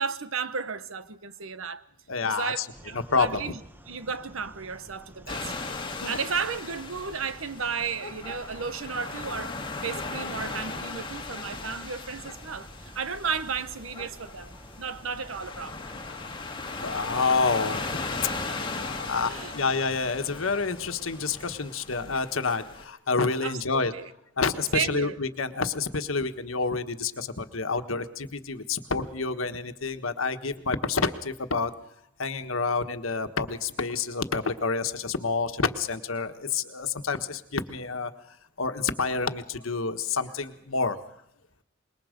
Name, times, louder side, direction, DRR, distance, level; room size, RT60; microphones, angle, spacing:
voice 1, 0.0-1.8 2.2-3.6 3.9-5.5 5.8-9.5 9.8-15.9 18.3-18.6 19.2-19.5 23.4-24.1 24.7-25.1, right 6 dB, 90° right, 1.1 m, -34 dB
voice 2, 2.1-2.7 2.9-3.5 6.0-6.2 16.1-16.3 16.8-18.3 18.7-23.9 24.4-31.7 32.2-41.0, left 4 dB, 85° left, 1.4 m, -28 dB
sound 1, 2.7-21.6, equal, 10° right, 1.2 m, -50 dB
sound 2, 5.3-22.8, left 3 dB, 25° left, 2.1 m, -37 dB
25.5 x 21.5 x 5.2 m
head